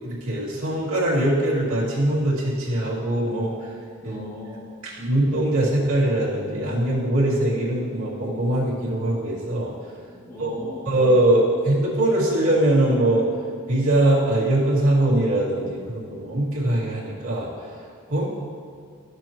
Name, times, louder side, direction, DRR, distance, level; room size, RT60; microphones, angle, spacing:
voice 1, 0.0-3.5 4.0-4.2 5.0-9.7 10.4-10.5 10.9-13.3 13.7-17.5 18.1-18.2, right 1 dB, 75° right, -7 dB, 2.3 m, -22 dB
voice 2, 4.0-4.7 10.1-10.9, left 1 dB, 15° left, -8 dB, 2.5 m, -37 dB
12.5 x 6.8 x 3.0 m, 2.2 s
head